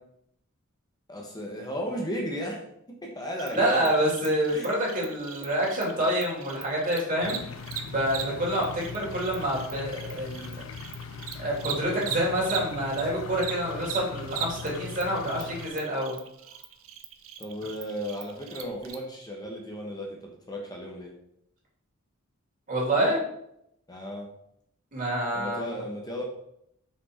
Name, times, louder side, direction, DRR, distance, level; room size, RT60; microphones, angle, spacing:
voice 1, 1.1-4.0 4.5-4.7 5.6-5.8 17.4-21.2 23.9-24.3 25.3-26.2, equal, 20° left, 0 dB, 1.0 m, -35 dB
Cricket, 3.4-13.0 13.3-18.9, right 9 dB, 85° right, 0.8 m, -39 dB
voice 2, 3.5-7.4 7.8-10.6 11.4-16.2 22.7-23.2 24.9-25.7, right 1 dB, 40° right, -3 dB, 2.8 m, -27 dB
sound 1, 7.2-15.7, left 5 dB, 80° left, 0.5 m, -40 dB
6.2 x 5.3 x 4.3 m, 0.75 s
head